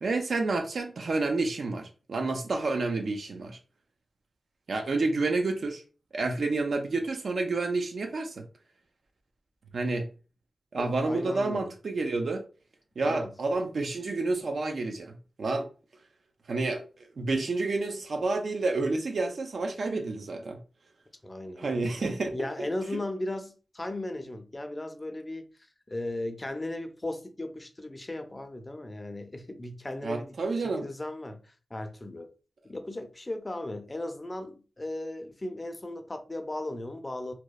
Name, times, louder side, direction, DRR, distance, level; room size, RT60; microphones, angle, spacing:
voice 1, 0.0-3.6 4.7-5.8 6.1-8.5 9.7-10.1 10.7-12.4 13.0-15.7 16.5-20.6 21.6-22.7 22.9-23.0 30.0-30.9, right 3 dB, 80° right, 0.4 m, -29 dB
voice 2, 10.8-11.7 13.0-13.3 21.2-22.0 22.3-25.5 25.9-32.3 32.6-37.3, left 1 dB, 25° left, 0.4 m, -37 dB
2.8 x 2.0 x 2.2 m
wide cardioid pair, 90°, 0 cm